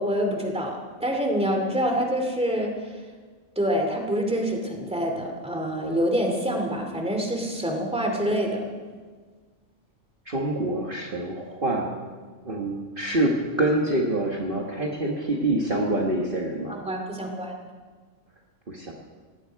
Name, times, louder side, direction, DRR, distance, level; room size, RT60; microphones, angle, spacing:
voice 1, 0.0-2.8 3.6-8.6 16.7-17.5, equal, 5° right, 2 dB, 2.4 m, -26 dB
voice 2, 10.3-11.9 12.4-16.8 18.7-18.9, right 1 dB, 40° right, -1 dB, 1.7 m, -26 dB
18.5 x 16.0 x 4.7 m, 1.5 s
omnidirectional pair, 1.4 m